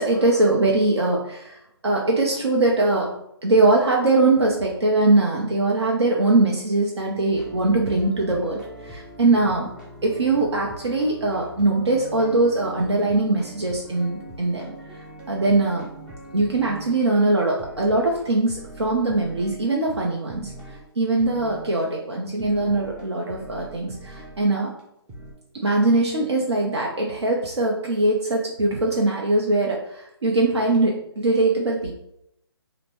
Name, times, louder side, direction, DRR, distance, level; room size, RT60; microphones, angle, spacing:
voice 1, 0.0-3.1 3.4-9.7 10.0-15.9 16.3-24.7 25.6-31.9, right 2 dB, 80° right, -1 dB, 0.7 m, -22 dB
sound 1, 7.3-17.0 17.6-19.7 20.0-20.1 20.3-20.9 21.2-21.8 22.4-24.5 24.8-24.9 25.1-25.3, right 1 dB, 5° right, 0.3 m, -42 dB
5.0 x 2.1 x 3.0 m, 0.77 s
figure-of-eight pair, 145°, 14 cm